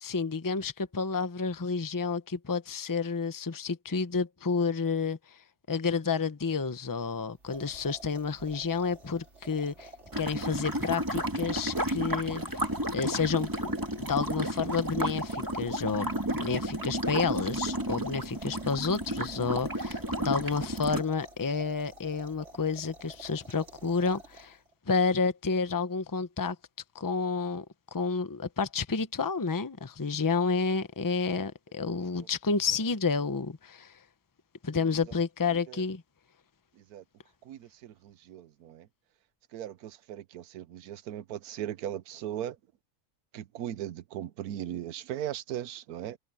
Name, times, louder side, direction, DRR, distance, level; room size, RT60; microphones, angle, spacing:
voice 1, 0.0-5.4 5.7-9.9 10.2-12.6 12.9-13.5 14.0-24.6 24.9-26.6 26.9-27.6 27.9-33.9 34.6-36.0, left 5 dB, 15° left, 0.7 m, -30 dB
sound 1, 7.3-24.7, right 2 dB, 50° right, 3.4 m, -51 dB
sound 2, 10.1-21.0, right 1 dB, 15° right, 2.2 m, -32 dB
voice 2, 35.5-35.8 36.8-37.0 37.4-38.9 39.5-42.6 43.3-46.2, right 11 dB, 80° right, 1.3 m, -38 dB
omnidirectional pair, 1.6 m